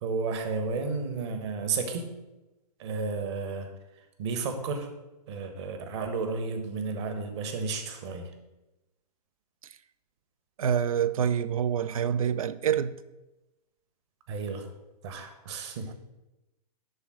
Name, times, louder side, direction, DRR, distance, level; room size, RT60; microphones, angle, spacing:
voice 1, 0.0-2.1 2.8-3.7 4.2-4.9 5.3-8.3 14.3-14.6 15.0-15.9, right 4 dB, 40° right, 1.3 m, -32 dB
voice 2, 10.6-13.0, right 8 dB, 60° right, 0.5 m, -26 dB
10.5 x 3.8 x 6.3 m
figure-of-eight pair, 115°, 21 cm